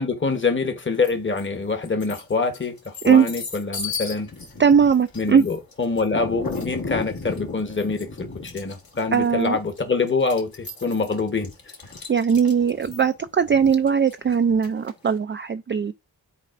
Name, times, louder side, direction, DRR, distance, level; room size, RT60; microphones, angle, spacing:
voice 1, 0.0-4.3 5.1-11.5, left 4 dB, 30° left, 1.2 m, -25 dB
sound 1, 1.0-1.5 1.8-15.1, left 4 dB, 60° left, 1.6 m, -35 dB
voice 2, 4.6-5.4 9.1-9.6 12.1-15.9, right 6 dB, 30° right, 0.4 m, -19 dB
11.0 x 4.0 x 2.5 m
cardioid pair, 45°, 39 cm